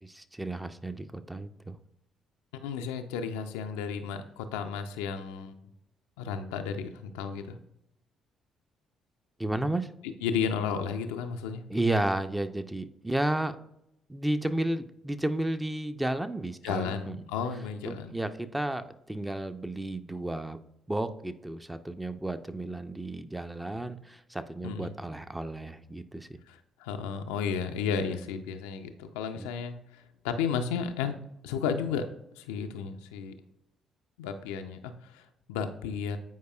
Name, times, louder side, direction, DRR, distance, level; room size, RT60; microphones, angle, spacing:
voice 1, 0.0-1.8 9.4-9.9 11.7-13.6 14.1-17.3 17.9-20.6 20.9-26.4 28.1-28.2 29.3-29.5, right 1 dB, 10° right, 9 dB, 0.5 m, -32 dB
voice 2, 2.5-5.5 6.2-7.6 10.2-11.6 16.6-18.2 24.6-24.9 26.5-31.2 31.4-32.1 32.4-33.3 34.2-36.2, left 6 dB, 75° left, 7 dB, 0.4 m, -33 dB
9.3 x 4.7 x 2.3 m, 0.81 s
figure-of-eight pair, 45°, 0 cm